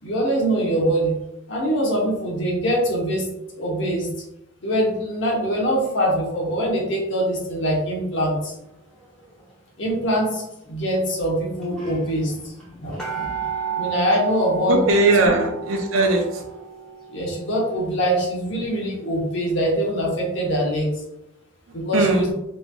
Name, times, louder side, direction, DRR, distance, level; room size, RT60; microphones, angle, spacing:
voice 1, 0.0-1.1 1.5-3.3 3.5-4.1 4.6-8.5 9.8-12.5 12.8-13.3 13.8-14.8 15.2-15.3 17.1-20.9 21.7-22.3, equal, 60° left, -3 dB, 0.9 m, -23 dB
sound 1, 9.8-10.2 11.0-11.1 11.3-11.4 11.6-19.2 19.7-19.8, right 7 dB, 5° left, 0.8 m, -33 dB
voice 2, 14.7-16.4 21.9-22.3, right 2 dB, 75° right, 1 dB, 0.5 m, -19 dB
3.0 x 2.5 x 2.2 m, 0.86 s
head